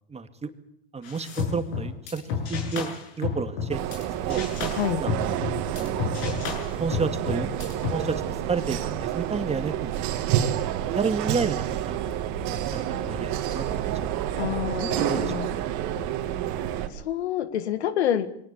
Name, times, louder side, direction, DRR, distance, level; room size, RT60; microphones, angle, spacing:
voice 1, 0.1-0.5 0.9-2.2 2.5-4.4 5.0-5.3 5.8-6.0 6.4-7.5 7.9-8.2 8.5-10.3 10.9-12.1 12.7-14.0 14.8-15.3, right 5 dB, 20° right, 8 dB, 2.3 m, -31 dB
sound 1, 1.0-4.0 4.3-7.9, left 6 dB, 65° left, 7.8 m, -31 dB
sound 2, 3.7-16.9, right 11 dB, 65° right, 2.8 m, -29 dB
voice 2, 14.4-15.5 16.9-18.3, left 11 dB, 90° left, 13 dB, 1.8 m, -27 dB
23.0 x 18.5 x 8.5 m, 0.72 s
hypercardioid pair, 95°, 32 cm